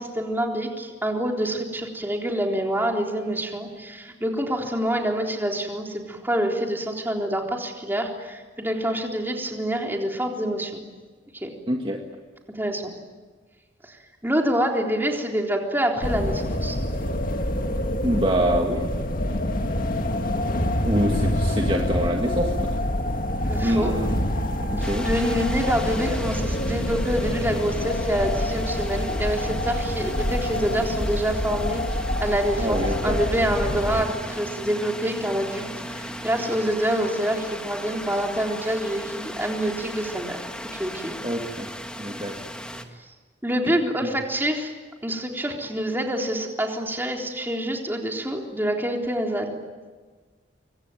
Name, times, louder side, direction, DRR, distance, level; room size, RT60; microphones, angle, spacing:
voice 1, 0.0-10.8 11.3-11.5 12.5-12.8 13.8-16.8 23.5-24.0 24.8-40.4 40.8-41.2 43.4-44.7 45.0-49.5, equal, 10° right, 1 dB, 3.8 m, -26 dB
voice 2, 11.7-12.0 18.0-18.9 20.8-22.7 23.6-24.1 24.7-25.1 32.6-33.2 41.2-41.7 42.0-42.3, equal, 30° right, 1 dB, 2.0 m, -25 dB
sound 1, 16.0-34.0, left 1 dB, 50° left, 2.0 m, -26 dB
sound 2, 24.8-42.9, equal, 5° left, 1.9 m, -37 dB
26.0 x 24.5 x 9.1 m, 1.4 s
head